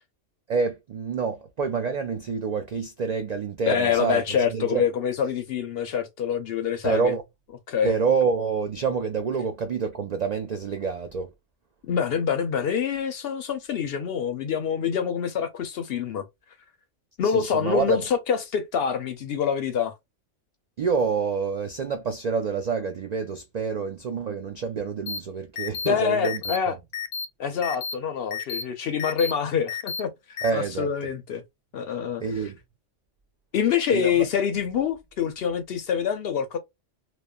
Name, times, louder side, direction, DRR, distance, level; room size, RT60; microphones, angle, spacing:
voice 1, 0.5-4.2 4.5-4.8 6.8-7.2 7.8-11.3 17.2-18.0 20.8-26.4 26.7-26.8 30.4-30.9 32.2-32.6 33.9-34.2, right 5 dB, 75° right, 0.3 m, -27 dB
voice 2, 3.7-7.1 7.7-7.9 11.8-16.2 17.2-19.9 25.9-26.7 27.4-31.4 31.7-32.2 33.5-36.6, left 7 dB, 60° left, 0.7 m, -26 dB
sound 1, 25.1-25.2 25.6-25.9 26.2-26.6 26.9-27.2 27.6-27.9 28.3-28.6 29.0-29.3 29.7-30.0 30.4-30.5, left 6 dB, 85° left, 1.0 m, -31 dB
3.0 x 2.1 x 2.2 m
omnidirectional pair, 1.3 m